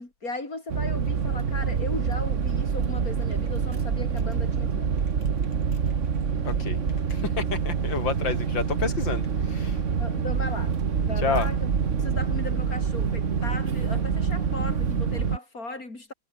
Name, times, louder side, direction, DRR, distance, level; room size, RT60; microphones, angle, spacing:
voice 1, 0.0-5.0 8.2-8.4 10.0-11.7 12.0-16.1, left 2 dB, 40° left, 5.9 m, -37 dB
sound 1, 0.7-15.4, right 6 dB, 40° right, 1.6 m, -26 dB
voice 2, 6.4-6.8 7.1-9.8 11.2-11.5, left 5 dB, 60° left, 3.2 m, -30 dB
omnidirectional pair, 2.3 m